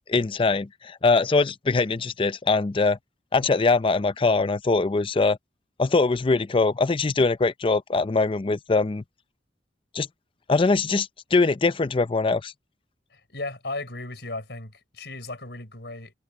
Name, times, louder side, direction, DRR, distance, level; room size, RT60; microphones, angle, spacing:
voice 1, 0.1-3.0 3.3-5.4 5.8-9.0 9.9-10.1 10.5-12.5, left 3 dB, 30° left, 0.5 m, -22 dB
voice 2, 13.1-16.1, left 2 dB, 70° left, 5.9 m, -36 dB
head